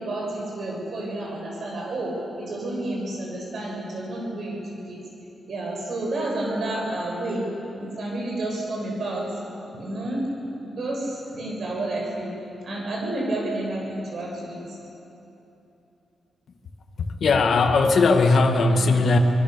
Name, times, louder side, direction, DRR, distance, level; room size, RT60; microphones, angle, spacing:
voice 1, 0.0-4.6 4.9-5.0 5.5-7.4 7.8-9.3 9.7-10.2 10.7-12.3 12.6-14.8, right 1 dB, 60° right, -1 dB, 7.0 m, -30 dB
voice 2, 17.0-19.2, left 3 dB, 60° left, 4 dB, 1.9 m, -19 dB
25.5 x 21.5 x 6.8 m, 3.0 s
wide cardioid pair, 115°, 0 cm